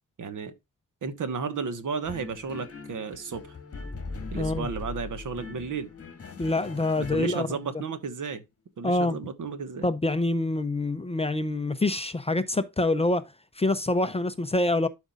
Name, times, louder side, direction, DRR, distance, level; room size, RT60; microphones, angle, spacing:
voice 1, 0.2-0.5 1.0-3.6 4.3-5.9 7.0-8.4 8.8-9.9, right 5 dB, 65° right, 1.3 m, -33 dB
sound 1, 2.0-7.8, left 4 dB, 45° left, 2.0 m, -40 dB
voice 2, 4.4-4.7 6.4-7.6 8.8-9.2 9.8-13.3 13.6-14.9, left 2 dB, 20° left, 0.5 m, -26 dB
12.0 x 5.1 x 2.4 m
wide cardioid pair, 175°, 33 cm